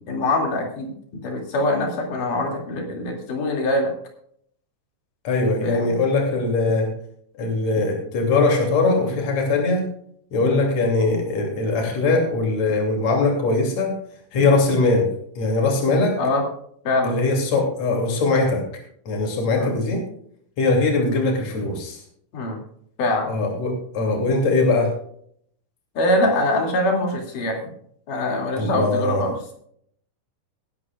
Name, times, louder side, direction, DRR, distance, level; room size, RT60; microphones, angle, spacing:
voice 1, 0.1-0.9 1.2-3.9 5.6-6.0 10.4-10.6 14.3-14.4 16.2-16.4 16.9-17.1 19.5-19.7 22.3-22.6 23.0-23.3 26.0-27.7 28.1-29.4, left 1 dB, 85° left, 1 dB, 4.2 m, -23 dB
voice 2, 5.2-6.9 7.4-9.9 10.3-13.9 14.3-15.1 15.4-16.2 17.0-18.6 19.1-20.0 20.6-22.0 23.3-24.9 28.6-29.2, left 3 dB, 60° left, 1 dB, 3.8 m, -21 dB
20.0 x 11.0 x 2.4 m, 0.66 s
omnidirectional pair, 3.6 m